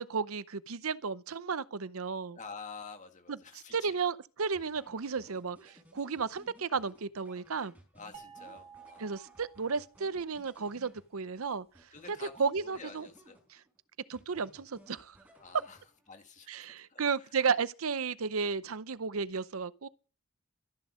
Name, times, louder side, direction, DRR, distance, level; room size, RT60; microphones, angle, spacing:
voice 1, 0.0-2.4 3.7-7.7 9.0-11.7 12.4-13.1 14.1-15.2 16.5-19.9, right 5 dB, 75° right, 0.7 m, -33 dB
voice 2, 2.4-4.0 7.9-9.2 11.9-12.4 12.6-13.4 15.4-15.8 16.1-16.5 16.9-17.3, left 4 dB, 35° left, 1.9 m, -48 dB
sound 1, 4.5-11.4 11.7-13.8 14.1-16.2, equal, 5° right, 5.6 m, -60 dB
sound 2, 8.1-10.4, right 7 dB, 30° right, 1.9 m, -53 dB
13.5 x 11.0 x 6.3 m
head